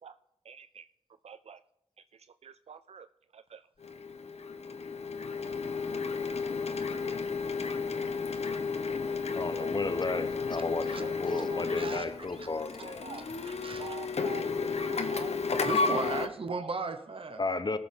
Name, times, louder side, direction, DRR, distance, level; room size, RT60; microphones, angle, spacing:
voice 1, 0.5-0.8 1.2-1.6 2.4-3.1 3.3-3.6 9.5-9.7 11.0-12.1 12.8-13.2 13.8-14.5 14.9-15.3 16.0-16.1 16.5-16.7, right 6 dB, 80° right, 0.4 m, -45 dB
Printer, 3.8-16.3, left 4 dB, 85° left, 1.0 m, -33 dB
voice 2, 9.3-13.1 17.4-17.8, left 3 dB, 45° left, 0.9 m, -33 dB
voice 3, 11.7-12.0 12.4-12.5 13.1-14.0 15.6-17.4, right 4 dB, 60° right, 0.9 m, -36 dB
19.0 x 6.9 x 3.7 m
wide cardioid pair, 95°, 11 cm